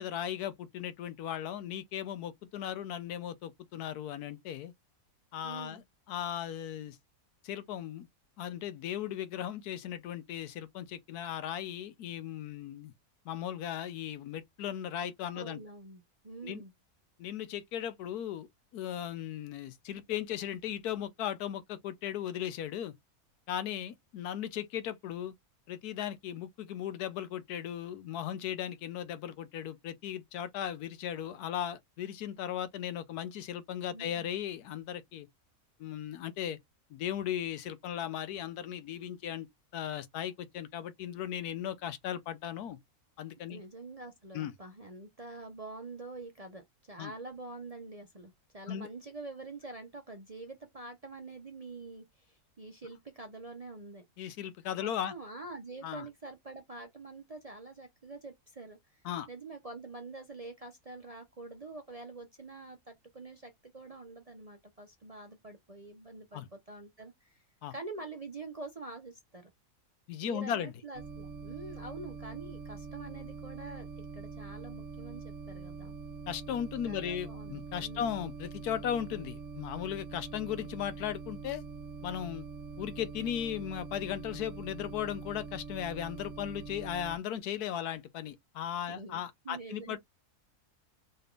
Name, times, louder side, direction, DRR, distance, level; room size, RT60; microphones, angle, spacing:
voice 1, 0.0-4.7 5.3-5.8 6.1-7.0 7.4-8.1 8.4-12.9 13.2-15.6 16.4-16.6 17.2-18.5 18.7-22.9 23.5-25.3 25.7-35.3 35.8-36.6 36.9-39.5 39.7-42.8 43.2-43.6 44.3-44.5 47.0-47.1 48.7-48.9 54.2-55.1 55.8-56.0 59.0-59.3 66.3-66.5 67.6-67.7 70.1-70.7 76.3-81.6 82.0-82.5 82.8-90.0, left 10 dB, 80° left, 1.2 m, -37 dB
voice 2, 5.4-5.8 15.3-16.7 33.9-34.3 43.5-54.1 54.8-59.0 59.3-67.4 67.7-69.5 70.2-75.9 76.8-78.2 88.9-90.0, right 3 dB, 35° right, 0.6 m, -46 dB
sound 1, 70.9-87.2, right 5 dB, 55° right, 1.0 m, -44 dB
4.2 x 3.4 x 2.4 m
omnidirectional pair, 1.6 m